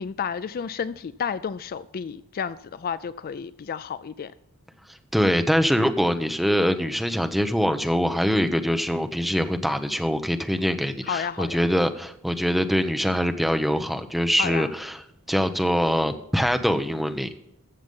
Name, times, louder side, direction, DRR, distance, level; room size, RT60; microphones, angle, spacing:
voice 1, 0.0-4.3 11.0-11.6 14.4-14.7, left 7 dB, 40° left, 15 dB, 0.4 m, -31 dB
voice 2, 5.1-15.0 15.3-17.3, equal, ahead, 8 dB, 0.8 m, -23 dB
14.0 x 7.0 x 5.4 m, 0.80 s
head